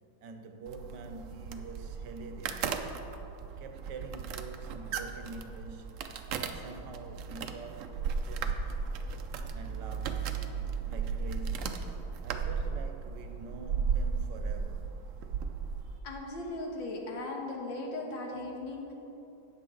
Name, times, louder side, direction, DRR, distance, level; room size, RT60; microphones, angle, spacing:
voice 1, 0.2-2.9 3.6-8.0 8.2-8.6 9.5-10.5 10.8-11.9 12.2-14.9, right 3 dB, 70° right, 1.2 m, -46 dB
sound 1, 0.7-16.0, right 6 dB, 85° right, 0.6 m, -35 dB
voice 2, 16.0-18.9, left 2 dB, 80° left, 2.0 m, -37 dB
17.0 x 6.5 x 3.8 m
omnidirectional pair, 2.1 m